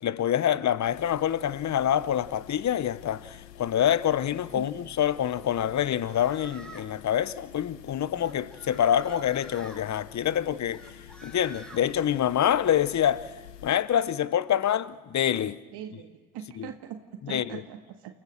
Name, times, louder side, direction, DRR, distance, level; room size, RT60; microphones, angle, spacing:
voice 1, 0.0-10.9 11.2-13.3 13.6-15.6 16.6-16.7 17.3-17.4, left 10 dB, 35° left, 1.0 m, -26 dB
sound 1, 0.8-13.7, left 10 dB, 85° left, 1.0 m, -49 dB
sound 2, 5.7-6.9 8.1-9.8 10.7-11.8, right 1 dB, ahead, 6.0 m, -48 dB
voice 2, 15.7-18.2, right 9 dB, 55° right, 1.8 m, -41 dB
30.0 x 17.0 x 6.6 m
hypercardioid pair, 55°, 47 cm